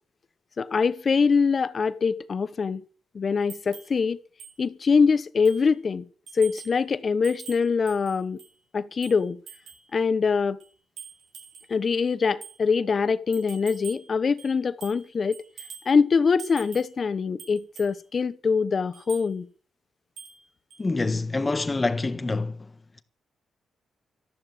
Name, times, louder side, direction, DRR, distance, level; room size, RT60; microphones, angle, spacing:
voice 1, 0.6-2.8 3.1-4.2 4.6-6.1 6.3-8.4 8.7-9.4 9.9-10.6 11.7-15.4 15.9-19.5, left 5 dB, 40° left, 0.9 m, -23 dB
sound 1, 3.5-4.0 4.4-4.6 4.9-5.0 5.4-5.7 6.3-6.8 7.2-8.6 9.0-9.9 10.6-11.7 12.4-12.6 13.3-14.1 14.4-15.1 15.3-15.9 16.4-17.0 17.4-17.9 18.9-19.3 20.2-20.4 20.7-20.8, right 6 dB, 85° right, 7.5 m, -45 dB
voice 2, 20.8-22.6, left 3 dB, 25° left, 1.4 m, -26 dB
13.5 x 12.0 x 7.8 m
cardioid pair, 105°, 0 cm